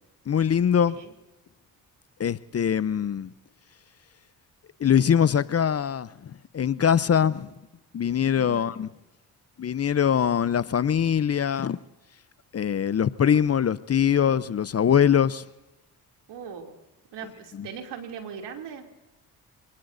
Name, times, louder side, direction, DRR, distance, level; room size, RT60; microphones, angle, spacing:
voice 1, 0.3-1.0 2.2-3.3 4.8-7.5 7.9-8.9 9.6-11.8 12.5-15.4 17.6-17.7, left 8 dB, 35° left, 0.7 m, -23 dB
voice 2, 8.3-8.7 16.3-16.8 17.1-18.8, right 7 dB, 75° right, 2.9 m, -39 dB
27.5 x 19.0 x 2.7 m
hypercardioid pair, 50°, 43 cm